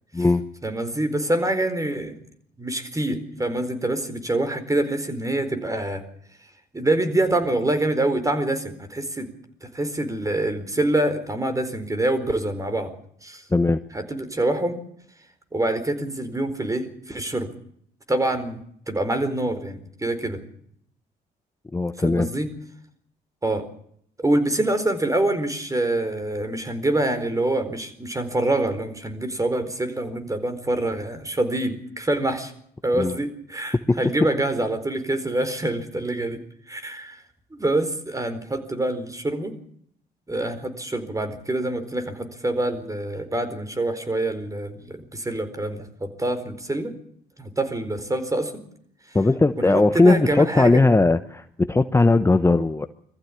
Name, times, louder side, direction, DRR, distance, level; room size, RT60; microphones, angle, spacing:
voice 1, 0.6-2.2 2.6-6.0 6.7-9.3 9.6-12.9 13.2-13.4 13.9-14.8 15.5-17.5 18.1-20.4 22.0-22.5 23.4-23.7 24.2-32.5 32.8-36.4 36.7-37.2 37.5-39.5 40.3-46.9 47.4-48.6 49.6-50.8, right 1 dB, 20° right, 9 dB, 4.4 m, -25 dB
voice 2, 21.7-22.3 33.0-33.1 33.9-34.0 49.1-52.9, left 2 dB, 15° left, 11 dB, 1.0 m, -18 dB
22.0 x 14.5 x 8.6 m, 0.68 s
supercardioid pair, 65°, 18 cm